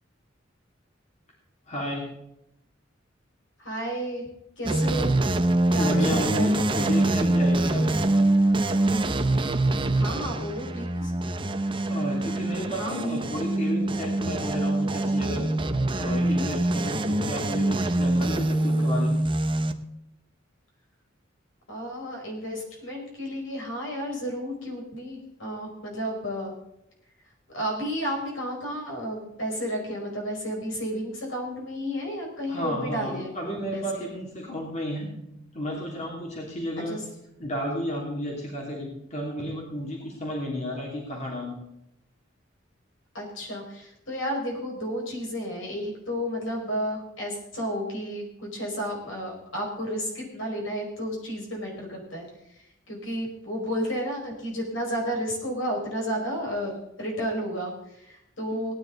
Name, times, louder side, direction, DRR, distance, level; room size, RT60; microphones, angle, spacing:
voice 1, 1.7-2.1 5.7-8.1 11.9-15.5 16.0-19.2 32.5-35.1 35.5-37.0 37.4-41.6 43.7-43.8 58.5-58.7, equal, 35° left, -2 dB, 3.0 m, -32 dB
voice 2, 3.6-4.2 4.6-5.1 5.7-6.5 9.9-11.1 12.8-13.1 21.7-26.5 27.5-33.3 33.7-34.1 36.9-37.0 43.1-52.3 52.9-58.7, equal, 80° left, -1 dB, 5.5 m, -32 dB
sound 1, 4.7-19.7, right 2 dB, 25° right, 0.8 m, -24 dB
18.5 x 10.5 x 3.9 m, 0.81 s
head